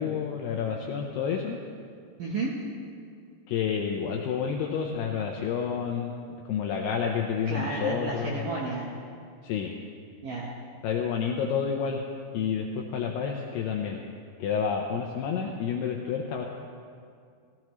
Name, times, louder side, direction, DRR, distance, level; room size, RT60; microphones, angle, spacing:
voice 1, 0.0-1.6 3.5-6.1 6.5-8.5 9.4-9.8 10.8-12.1 12.3-14.0 14.4-16.4, left 7 dB, 90° left, 1 dB, 2.3 m, -29 dB
voice 2, 2.2-2.5 7.5-8.9 10.2-10.5, right 3 dB, 85° right, -3 dB, 1.8 m, -32 dB
17.0 x 15.0 x 3.1 m, 2.2 s
omnidirectional pair, 5.5 m